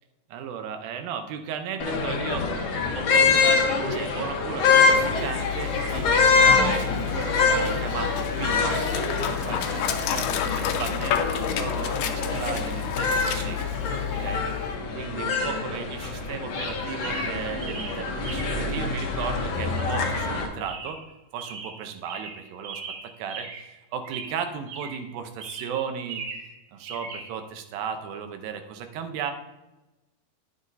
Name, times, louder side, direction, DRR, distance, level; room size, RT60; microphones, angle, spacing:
voice 1, 0.3-2.5 2.9-3.6 3.9-13.6 14.2-21.0 21.3-22.8 23.2-23.5 23.9-26.2 26.7-29.3, right 7 dB, 80° right, 7 dB, 2.5 m, -35 dB
sound 1, 1.8-20.5, left 4 dB, 60° left, 1.7 m, -25 dB
Dog, 4.8-14.8, left 9 dB, 80° left, 2.2 m, -30 dB
Chirp tweet, 12.5-12.7 15.3-15.7 16.4-16.7 17.0-18.7 20.7-21.1 21.4-23.8 24.0-25.1 25.4-26.5 26.8-27.3, right 5 dB, 55° right, 2.0 m, -39 dB
10.0 x 7.4 x 4.0 m, 1.0 s
omnidirectional pair, 4.2 m